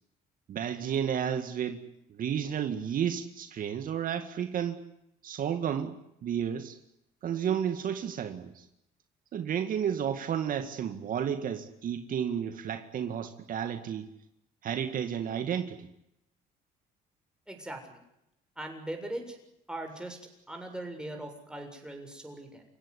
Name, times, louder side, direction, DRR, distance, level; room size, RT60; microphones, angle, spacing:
voice 1, 0.5-1.8 2.1-4.8 5.2-6.0 6.2-6.8 7.2-8.7 9.3-14.1 14.6-15.9, right 8 dB, 55° right, 8 dB, 2.0 m, -32 dB
voice 2, 17.5-18.0 18.6-19.4 19.7-20.2 20.5-22.6, right 1 dB, 5° right, 3 dB, 7.3 m, -40 dB
29.5 x 17.0 x 9.9 m, 0.84 s
cardioid pair, 110°, 17 cm